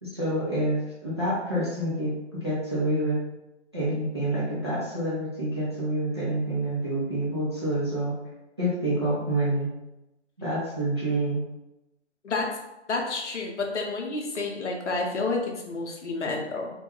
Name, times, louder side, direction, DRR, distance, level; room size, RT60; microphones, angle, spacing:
voice 1, 0.0-3.2 3.7-8.1 8.6-9.7 10.4-11.4, right 1 dB, 25° right, -8 dB, 0.4 m, -27 dB
voice 2, 12.2-12.6 12.9-16.7, left 3 dB, 75° left, 1 dB, 0.7 m, -30 dB
2.2 x 2.2 x 3.0 m, 0.96 s
figure-of-eight pair, 155°, 35 cm